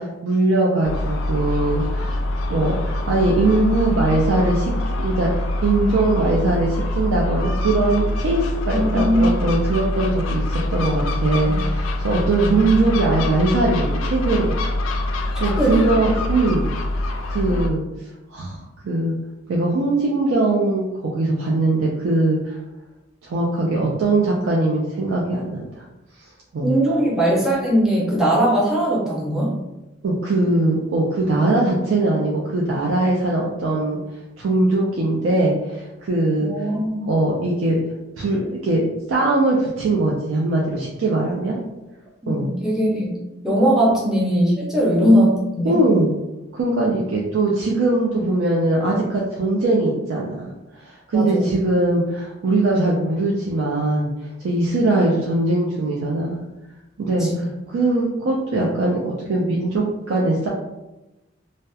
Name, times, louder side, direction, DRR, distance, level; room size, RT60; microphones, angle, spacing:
voice 1, 0.0-2.2 2.5-14.5 15.4-16.7 17.3-17.8 18.3-19.1 19.5-22.6 23.2-25.8 26.5-26.7 30.0-34.0 34.4-36.5 37.0-37.8 38.2-38.8 39.1-41.6 42.3-42.5 45.6-46.1 46.5-50.3 50.8-54.1 54.4-56.4 57.0-57.3 57.7-60.5, right 2 dB, 80° right, -3 dB, 0.4 m, -21 dB
Gull seagull, 0.8-17.7, left 1 dB, 85° left, 0.3 m, -24 dB
voice 2, 8.7-9.6 11.4-11.6 12.4-12.5 15.4-15.9 26.6-29.6 36.4-37.1 42.2-43.2 43.4-45.8 51.1-51.6 57.2-57.4, equal, ahead, -5 dB, 0.5 m, -20 dB
2.7 x 2.0 x 2.2 m, 1.0 s
head